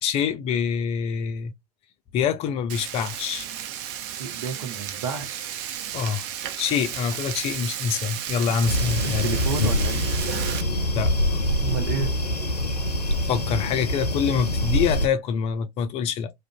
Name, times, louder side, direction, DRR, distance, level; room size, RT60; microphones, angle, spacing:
voice 1, 0.0-1.5 2.1-3.5 5.9-6.3 6.6-9.3 11.0-11.4 13.3-16.3, left 7 dB, 30° left, 0.4 m, -25 dB
Frying (food), 2.7-10.6, right 10 dB, 45° right, 0.4 m, -33 dB
voice 2, 4.1-5.5 9.0-10.0 11.6-12.1, right 6 dB, 65° right, 0.8 m, -31 dB
sound 1, 8.6-15.1, left 1 dB, 90° left, 0.5 m, -25 dB
2.4 x 2.1 x 2.6 m
figure-of-eight pair, 80°, 20 cm